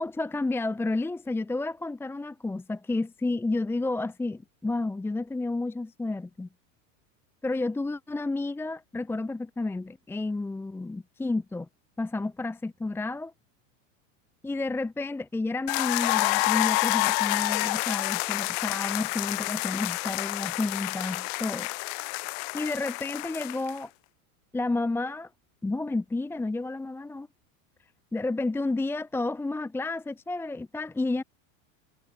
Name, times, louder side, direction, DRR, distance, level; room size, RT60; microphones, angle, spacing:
voice 1, 0.0-6.5 7.4-11.7 12.0-13.3 14.4-21.7 22.5-23.9 24.5-25.3 25.6-27.3 28.1-31.2, left 2 dB, 5° left, 0.8 m, -31 dB
sound 1, 15.7-23.8, left 38 dB, 50° left, 0.7 m, -28 dB
supercardioid pair, 135°, 40 cm